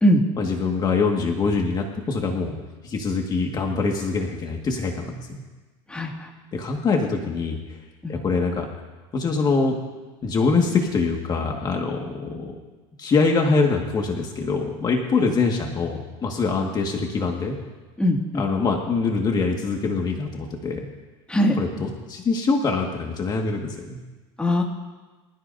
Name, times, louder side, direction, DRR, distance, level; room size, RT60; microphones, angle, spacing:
voice 1, 0.4-2.5 2.8-5.4 6.5-7.6 8.1-8.7 9.1-9.8 10.2-12.5 13.0-17.6 18.3-20.9 21.6-24.0, left 4 dB, 35° left, 1 dB, 1.9 m, -24 dB
voice 2, 5.9-6.3 8.0-8.2 18.0-18.4 21.3-21.6 24.4-24.6, equal, 10° left, -1 dB, 2.3 m, -21 dB
25.5 x 14.0 x 2.8 m, 1.3 s
supercardioid pair, 115°, 13 cm